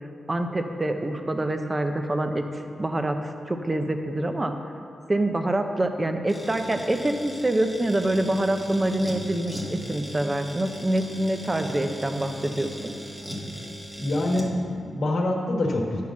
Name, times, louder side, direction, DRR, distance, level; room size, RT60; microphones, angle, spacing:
voice 1, 0.3-3.2 3.5-4.5 5.1-12.9, right 1 dB, 20° right, 6 dB, 0.6 m, -26 dB
sound 1, 6.3-14.5, equal, ahead, 1.3 m, -38 dB
voice 2, 14.0-16.0, left 1 dB, 55° left, 1 dB, 1.3 m, -25 dB
11.0 x 4.7 x 7.0 m, 2.7 s
wide cardioid pair, 160°, 0 cm